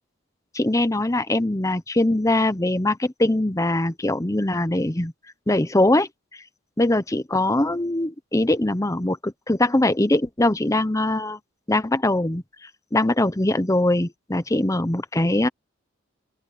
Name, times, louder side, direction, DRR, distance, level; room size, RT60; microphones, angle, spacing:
voice 1, 0.5-5.1 5.5-6.1 6.8-11.4 11.7-12.4 12.9-15.5, left 1 dB, 15° left, 0.9 m, -22 dB
open air
head